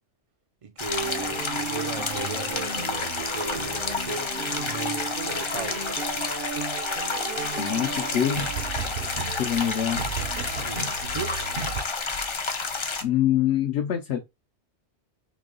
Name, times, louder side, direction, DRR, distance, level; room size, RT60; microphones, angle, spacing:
voice 1, 0.6-4.3 4.6-5.9 10.6-11.4, right 4 dB, 45° right, 0.5 m, -36 dB
sound 1, 0.8-13.0, left 4 dB, 40° left, 0.4 m, -30 dB
sound 2, 1.0-11.8, right 5 dB, 60° right, 0.8 m, -34 dB
voice 2, 7.6-8.5 9.4-10.0 13.0-14.2, left 10 dB, 70° left, 0.9 m, -25 dB
3.0 x 2.8 x 3.7 m
omnidirectional pair, 1.2 m